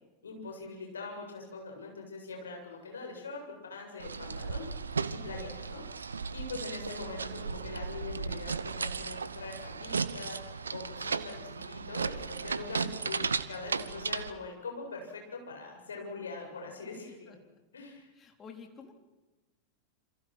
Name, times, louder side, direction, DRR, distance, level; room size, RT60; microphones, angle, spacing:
voice 1, 0.2-4.7 5.1-5.8 6.3-17.3 17.7-18.1, left 4 dB, 70° left, 2 dB, 7.7 m, -43 dB
sound 1, 4.0-14.3, right 5 dB, 75° right, 1.1 m, -35 dB
voice 2, 12.1-12.5 17.1-17.6 18.1-18.9, left 6 dB, 20° left, 4 dB, 3.8 m, -53 dB
28.5 x 27.0 x 6.3 m, 1.1 s
figure-of-eight pair, 90°, 0 cm